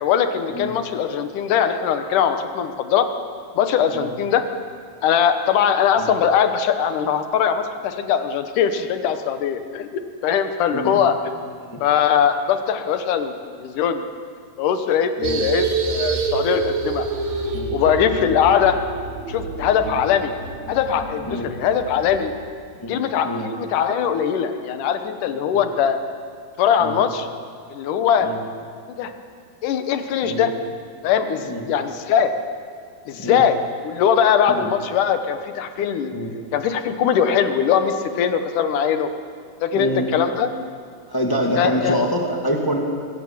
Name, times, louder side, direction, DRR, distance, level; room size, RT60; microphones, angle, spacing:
voice 1, 0.0-3.1 3.5-4.4 5.0-9.9 10.2-11.2 11.8-14.0 14.6-17.1 17.7-18.8 19.3-20.3 20.7-22.3 22.9-26.0 26.6-27.3 27.7-28.3 29.0-29.1 29.6-30.5 31.0-32.3 33.1-33.6 33.8-36.1 36.5-39.1 39.6-40.5 41.6-42.0, left 8 dB, 65° left, 8 dB, 2.3 m, -21 dB
sound 1, 15.2-22.3, right 4 dB, 55° right, 2.7 m, -27 dB
voice 2, 22.8-23.5 26.8-27.0 28.2-28.4 30.2-30.5 31.5-31.7 33.2-33.4 34.5-34.7 36.1-36.3 39.7-40.1 41.1-42.8, equal, 20° left, 0 dB, 0.6 m, -26 dB
23.0 x 16.0 x 7.4 m, 2.1 s
omnidirectional pair, 4.4 m